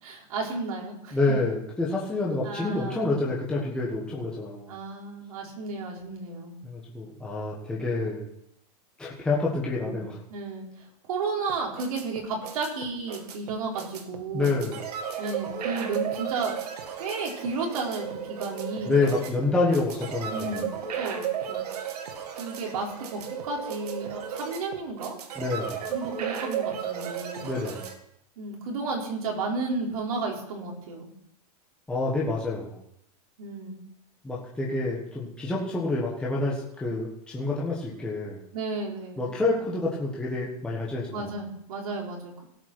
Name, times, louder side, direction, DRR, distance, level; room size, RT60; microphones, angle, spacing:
voice 1, 0.0-1.4 2.4-3.2 4.7-6.6 9.9-10.0 10.3-10.7 11.1-14.6 15.2-16.5 17.0-19.0 20.3-21.8 22.4-25.2 25.9-27.5 28.4-31.1 33.4-33.8 38.5-39.2 41.1-42.4, right 3 dB, 65° right, -1 dB, 3.9 m, -33 dB
voice 2, 1.1-4.7 6.6-8.3 9.0-10.2 14.3-14.8 18.8-20.7 25.4-25.9 27.4-27.9 31.9-32.8 34.2-38.4 39.2-41.3, left 3 dB, 5° left, -5 dB, 1.4 m, -28 dB
sound 1, 11.5-27.9, right 8 dB, 85° right, 2.0 m, -35 dB
17.0 x 5.9 x 6.1 m, 0.75 s
supercardioid pair, 175°, 20 cm